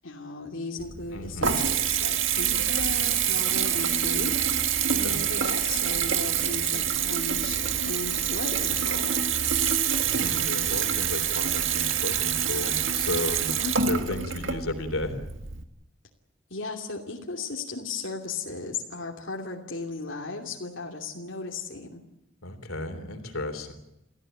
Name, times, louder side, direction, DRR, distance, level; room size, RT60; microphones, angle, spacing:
voice 1, 0.0-4.4 4.9-9.2 13.6-13.7 16.5-22.0, left 3 dB, 70° left, -1 dB, 2.8 m, -36 dB
Water tap faucet / Bathtub (filling or washing) / Trickle dribble, 0.8-15.6, right 8 dB, 70° right, 1.8 m, -26 dB
voice 2, 1.1-1.6 4.9-5.2 10.1-13.5 13.8-15.2 22.4-23.7, left 2 dB, 90° left, 7 dB, 3.5 m, -33 dB
28.5 x 15.5 x 9.1 m, 0.85 s
head